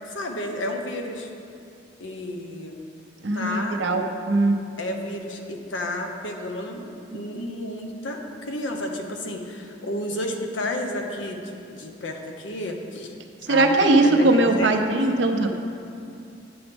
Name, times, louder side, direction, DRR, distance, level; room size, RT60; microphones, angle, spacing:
voice 1, 0.1-1.3 2.0-2.8 3.3-3.8 4.8-6.8 7.1-13.1 13.5-14.8, left 1 dB, 90° left, 3 dB, 0.8 m, -31 dB
voice 2, 3.2-4.6 13.5-15.5, right 2 dB, 70° right, 4 dB, 0.7 m, -20 dB
9.6 x 7.0 x 3.5 m, 2.5 s
head